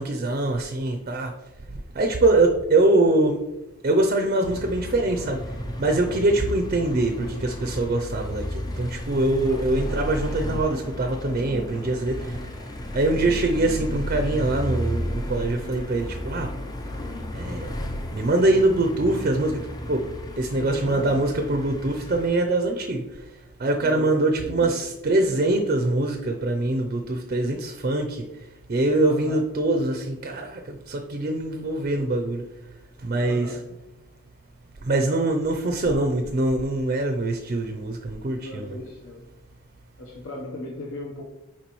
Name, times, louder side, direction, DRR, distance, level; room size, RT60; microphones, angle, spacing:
voice 1, 0.0-1.3 1.9-3.4 3.8-5.4 5.8-12.5 12.9-16.5 17.3-17.7 18.1-20.1 20.4-28.3 28.7-32.4 33.0-33.6 34.8-38.8, right 2 dB, 40° right, 4 dB, 0.5 m, -23 dB
sound 1, 4.4-22.3, equal, 20° left, 0.4 m, -33 dB
sound 2, 9.2-15.2, left 1 dB, 85° left, 1.8 m, -48 dB
voice 2, 9.6-10.0 20.5-21.2 23.8-24.8 29.0-29.4 33.2-33.7 38.4-39.3 40.0-41.2, left 1 dB, 65° left, -2 dB, 0.8 m, -37 dB
6.8 x 4.9 x 3.0 m, 0.96 s
head